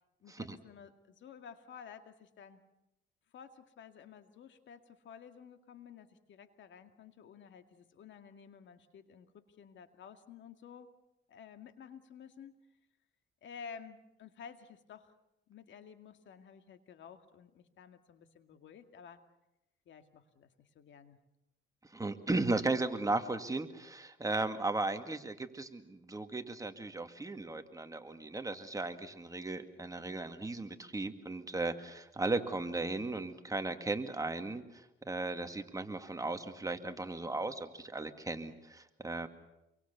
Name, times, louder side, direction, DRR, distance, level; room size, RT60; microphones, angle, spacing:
voice 1, 0.2-2.6 3.3-10.9 11.3-12.6 13.4-15.1 15.5-19.2 19.9-21.2, left 7 dB, 70° left, 8 dB, 2.2 m, -53 dB
voice 2, 21.9-39.3, right 2 dB, 15° right, 7 dB, 2.1 m, -36 dB
27.0 x 23.5 x 7.0 m, 0.90 s
cardioid pair, 90°, 20 cm